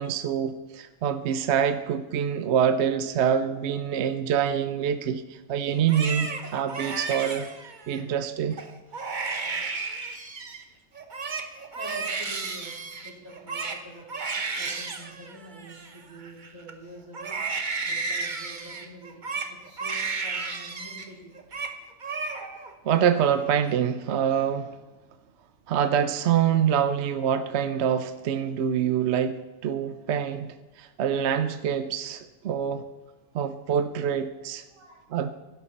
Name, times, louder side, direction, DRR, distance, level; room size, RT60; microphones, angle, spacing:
voice 1, 0.0-7.5 7.9-8.6 22.8-24.8 25.7-30.5 30.8-32.8 33.3-34.6 35.1-35.4, right 8 dB, 60° right, 11 dB, 0.9 m, -25 dB
Crying sobbing, 5.7-8.0 8.5-8.7 8.9-10.6 11.0-16.7 17.1-21.1 21.3-21.7 22.0-22.7 23.1-23.7, right 4 dB, 35° right, 1.1 m, -33 dB
voice 2, 8.9-9.3 11.7-14.1 14.6-17.4 17.9-19.2 19.5-21.3 34.3-35.2, right 1 dB, 80° right, -4 dB, 4.5 m, -46 dB
16.0 x 11.5 x 4.2 m, 1.2 s
omnidirectional pair, 1.4 m